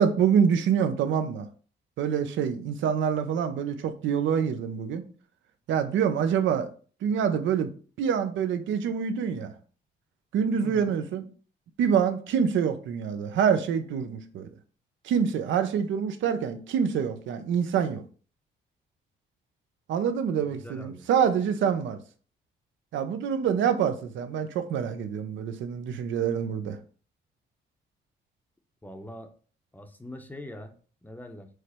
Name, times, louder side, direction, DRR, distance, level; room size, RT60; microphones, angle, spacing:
voice 1, 0.0-1.5 2.0-5.0 5.7-6.7 7.0-7.7 8.0-9.5 10.3-11.3 11.8-14.5 15.0-18.0 19.9-22.0 22.9-26.8, right 7 dB, 75° right, 0.6 m, -26 dB
voice 2, 10.6-10.9 20.4-21.1 28.8-29.3 29.7-31.5, left 1 dB, 10° left, 0.6 m, -43 dB
4.8 x 2.0 x 4.3 m
cardioid pair, 90°, 20 cm